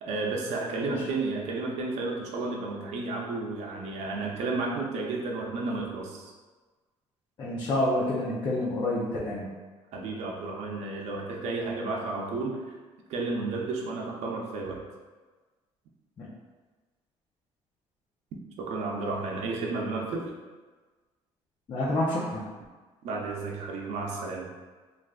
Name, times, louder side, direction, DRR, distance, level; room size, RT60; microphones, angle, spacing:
voice 1, 0.0-6.2 9.9-12.7 13.1-14.8 18.6-20.3 23.0-24.5, right 3 dB, 70° right, -1 dB, 0.6 m, -32 dB
voice 2, 7.4-9.4 16.2-16.3 21.7-22.4, left 1 dB, 35° left, -7 dB, 0.6 m, -28 dB
3.3 x 2.5 x 2.4 m, 1.3 s
cardioid pair, 130°, 12 cm